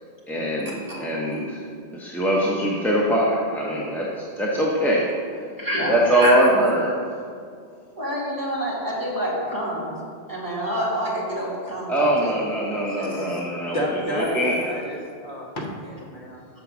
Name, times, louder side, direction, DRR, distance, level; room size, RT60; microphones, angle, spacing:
voice 1, 0.3-1.6 1.9-5.4 5.9-7.0 11.9-14.6, right 1 dB, ahead, -5 dB, 0.6 m, -23 dB
voice 2, 5.6-6.4 8.0-9.9 10.3-12.4 13.0-13.4 14.2-14.3, equal, 20° right, -7 dB, 1.9 m, -27 dB
voice 3, 13.7-16.6, equal, 55° left, -2 dB, 1.3 m, -31 dB
7.1 x 5.1 x 6.0 m, 2.3 s
omnidirectional pair, 1.1 m